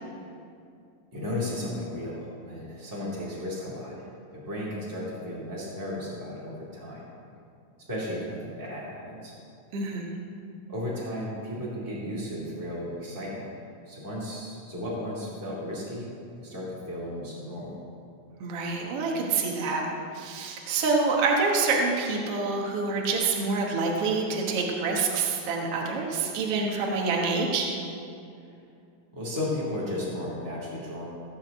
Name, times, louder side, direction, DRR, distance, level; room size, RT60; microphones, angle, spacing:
voice 1, 1.1-3.9 4.3-7.0 7.9-9.3 10.7-13.5 13.9-16.1 16.4-17.8 28.4-28.5 29.1-31.0, left 1 dB, 5° right, -7 dB, 2.1 m, -34 dB
voice 2, 9.7-10.1 18.4-19.8 20.1-27.7, right 4 dB, 55° right, -1 dB, 2.2 m, -27 dB
16.0 x 5.8 x 7.8 m, 2.5 s
omnidirectional pair, 3.4 m